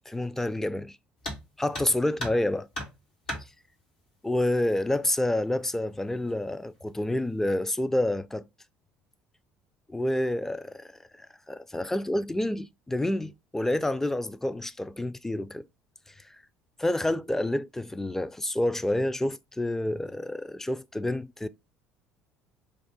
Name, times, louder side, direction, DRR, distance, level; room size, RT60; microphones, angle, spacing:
voice 1, 0.1-1.0 1.6-2.7 4.2-8.5 9.9-10.9 11.5-15.6 16.8-21.5, left 1 dB, 10° left, 0.3 m, -28 dB
sound 1, 1.2-1.5 1.7-2.5 2.7-3.5 4.6-4.7 5.2-5.3 6.1-6.4 6.8-7.2, equal, 85° left, 1.8 m, -36 dB
3.5 x 2.2 x 4.0 m
hypercardioid pair, 65°, 4 cm